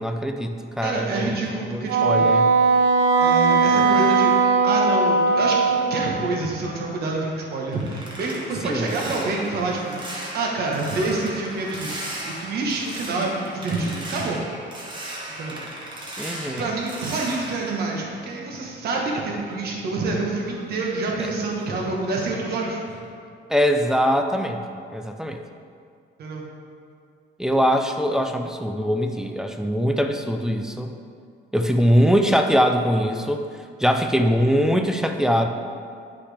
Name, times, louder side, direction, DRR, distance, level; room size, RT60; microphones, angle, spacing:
voice 1, 0.0-1.3 1.7-2.5 8.6-9.0 16.2-16.7 21.2-21.3 23.5-24.6 24.9-25.4 27.4-30.9 31.5-33.4 33.8-35.5, equal, 5° right, 4 dB, 0.3 m, -22 dB
voice 2, 0.8-2.3 3.2-14.4 15.4-15.6 16.4-22.8 26.2-26.5, right 3 dB, 55° right, -1 dB, 1.2 m, -27 dB
Wind instrument woodwind instrument, 1.9-6.4, right 4 dB, 80° right, 0.7 m, -19 dB
sound 1, 7.2-18.8 19.2-21.8 22.2-22.5 22.9-23.1, right 1 dB, 25° right, 1.1 m, -37 dB
9.7 x 5.7 x 3.4 m, 2.3 s
cardioid pair, 165°, 19 cm